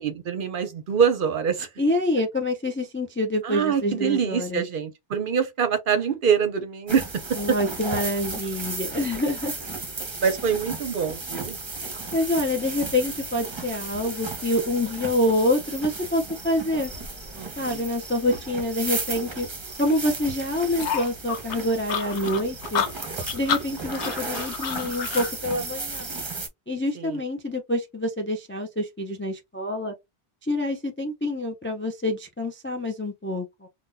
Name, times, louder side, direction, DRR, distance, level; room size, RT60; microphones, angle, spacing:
voice 1, 0.0-1.7 3.4-7.6 10.2-11.6 17.3-17.8 27.0-27.2, right 7 dB, 55° right, 0.7 m, -25 dB
voice 2, 1.8-4.6 7.4-9.5 12.1-16.9 17.6-19.5 19.8-22.9 23.3-26.1 26.7-29.9 30.4-33.7, left 1 dB, 20° left, 0.3 m, -26 dB
sound 1, 6.9-26.5, right 3 dB, 25° right, 0.8 m, -35 dB
sound 2, 20.8-25.3, left 8 dB, 90° left, 0.9 m, -29 dB
3.8 x 2.3 x 2.6 m
omnidirectional pair, 1.1 m